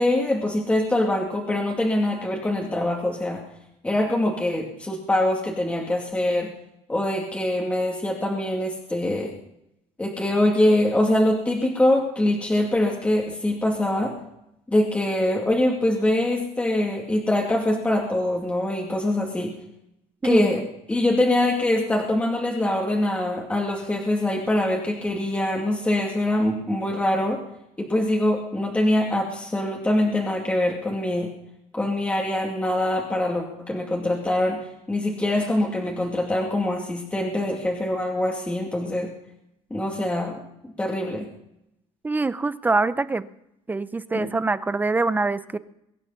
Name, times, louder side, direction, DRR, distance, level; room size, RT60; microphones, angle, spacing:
voice 1, 0.0-3.4 3.8-6.5 6.9-9.3 10.0-14.1 14.7-19.5 20.2-20.6 20.9-27.4 27.8-31.3 31.7-39.1 39.7-40.4 40.8-41.3 44.1-44.3, left 1 dB, 10° left, -1 dB, 2.4 m, -23 dB
voice 2, 20.2-20.7 42.0-43.3 43.7-45.6, right 3 dB, 15° right, 14 dB, 0.6 m, -24 dB
22.5 x 9.8 x 5.6 m, 0.83 s
cardioid pair, 145°, 13 cm